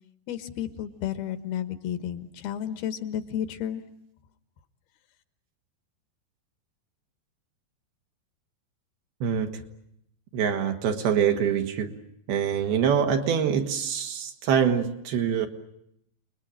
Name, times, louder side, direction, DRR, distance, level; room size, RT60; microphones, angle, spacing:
voice 1, 0.3-3.8, left 10 dB, 70° left, 11 dB, 2.9 m, -32 dB
voice 2, 9.2-9.6 10.3-11.9 12.3-15.5, right 8 dB, 65° right, 5 dB, 3.5 m, -25 dB
30.0 x 21.0 x 8.9 m, 0.78 s
omnidirectional pair, 5.0 m